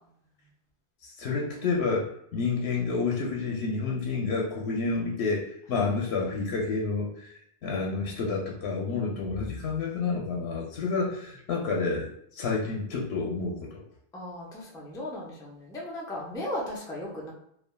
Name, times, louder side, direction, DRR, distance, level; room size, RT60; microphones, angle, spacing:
voice 1, 1.0-13.8, left 4 dB, 85° left, -2 dB, 0.8 m, -29 dB
voice 2, 14.1-17.3, left 1 dB, 5° left, -4 dB, 0.3 m, -37 dB
3.2 x 2.2 x 2.2 m, 0.71 s
omnidirectional pair, 1.0 m